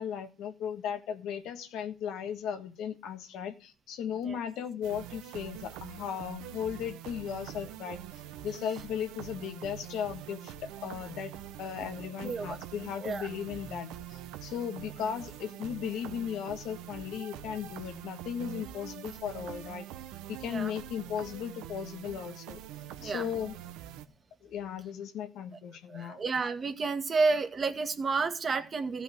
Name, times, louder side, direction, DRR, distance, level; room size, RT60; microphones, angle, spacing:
voice 1, 0.0-8.0 8.4-11.3 11.6-19.9 20.3-22.6 23.0-23.5 24.4-26.2, left 8 dB, 75° left, 7 dB, 1.4 m, -36 dB
sound 1, 4.8-24.1, right 12 dB, 90° right, 1.0 m, -45 dB
voice 2, 12.2-12.6 13.0-13.3 20.5-20.7 23.0-23.3 25.9-29.0, right 4 dB, 35° right, 7 dB, 1.7 m, -30 dB
14.0 x 5.5 x 7.5 m, 0.37 s
cardioid pair, 90°, 0 cm